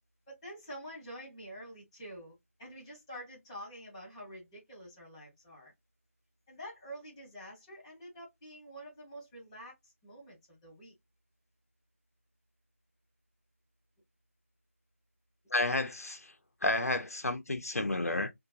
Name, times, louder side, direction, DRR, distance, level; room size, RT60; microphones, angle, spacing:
voice 1, 0.3-5.7 6.5-10.9, equal, 10° left, 1.2 m, -48 dB
voice 2, 15.5-16.3 16.6-18.3, left 2 dB, 90° left, 0.7 m, -31 dB
2.8 x 2.2 x 2.5 m
figure-of-eight pair, 170°, 8 cm